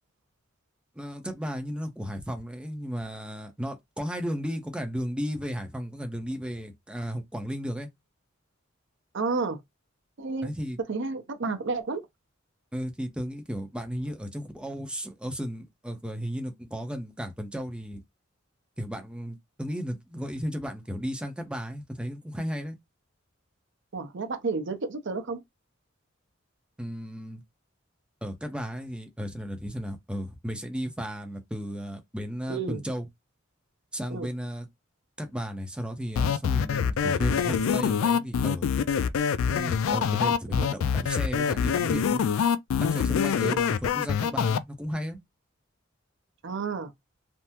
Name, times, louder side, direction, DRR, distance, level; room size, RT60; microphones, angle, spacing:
voice 1, 1.0-7.9 10.4-10.8 12.7-18.0 18.8-22.7 26.8-27.4 28.2-33.1 33.9-34.7 35.2-38.7 39.5-42.2 42.8-45.2, equal, 5° right, 0.6 m, -34 dB
voice 2, 9.1-9.6 10.2-10.5 10.9-12.0 23.9-25.4 32.5-32.8 34.1-34.3 40.5-40.7 43.4-43.6 46.4-46.9, right 4 dB, 65° right, 0.7 m, -31 dB
sound 1, 36.2-44.6, left 7 dB, 80° left, 0.3 m, -25 dB
3.4 x 2.0 x 2.8 m
head